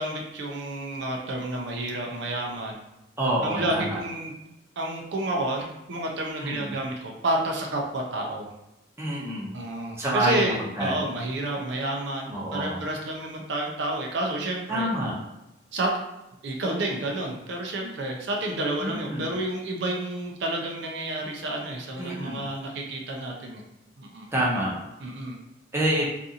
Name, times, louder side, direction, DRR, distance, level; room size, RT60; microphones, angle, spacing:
voice 1, 0.0-2.8 3.4-4.3 4.8-8.5 9.5-14.9 15.7-16.0 16.4-23.6 24.0-24.3 25.0-25.4, right 1 dB, 65° right, 0 dB, 0.5 m, -30 dB
voice 2, 3.2-4.0 6.4-6.7 9.0-9.5 10.0-11.0 12.3-12.8 14.7-15.1 18.8-19.3 22.0-22.4 24.3-24.7 25.7-26.1, right 1 dB, 15° right, -5 dB, 0.5 m, -27 dB
2.7 x 2.5 x 2.4 m, 0.93 s
head